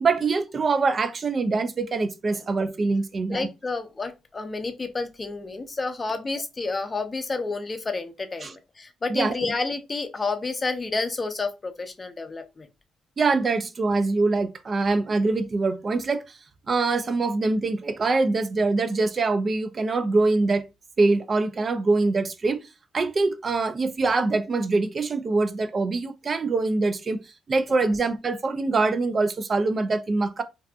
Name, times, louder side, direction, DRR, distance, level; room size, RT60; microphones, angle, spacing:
voice 1, 0.0-3.5 8.4-8.5 9.1-9.5 13.2-16.4 16.7-20.6 21.0-22.6 22.9-27.2 27.5-30.4, right 3 dB, 40° right, 0.3 m, -24 dB
voice 2, 3.3-12.7, left 3 dB, 30° left, 0.5 m, -30 dB
2.6 x 2.4 x 2.2 m
cardioid pair, 90°, 0 cm